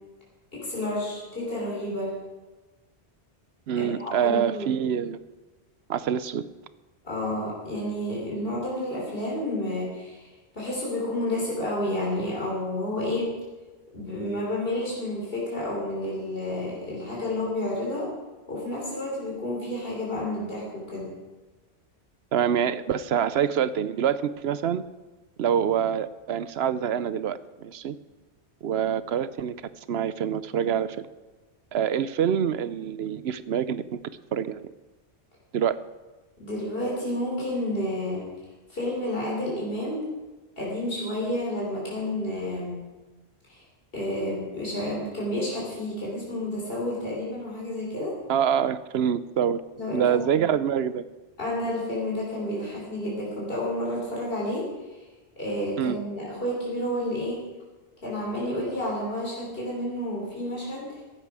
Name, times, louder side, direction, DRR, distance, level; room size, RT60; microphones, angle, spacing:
voice 1, 0.5-2.1 3.8-4.7 7.0-13.3 13.9-18.1 18.5-21.1 36.4-38.3 38.7-40.1 40.6-42.8 43.5-43.6 43.9-48.2 49.8-50.2 51.4-54.7 55.4-57.4 58.0-61.0, left 1 dB, 60° left, -4 dB, 3.9 m, -30 dB
voice 2, 3.7-5.2 5.9-6.4 22.3-24.8 25.4-28.0 28.6-29.5 29.9-31.1 31.7-34.0 34.3-34.7 35.5-35.8 48.3-49.6 49.9-51.0 55.8-56.0, right 8 dB, 70° right, 15 dB, 0.9 m, -26 dB
15.5 x 11.0 x 4.8 m, 1.2 s
omnidirectional pair, 1.1 m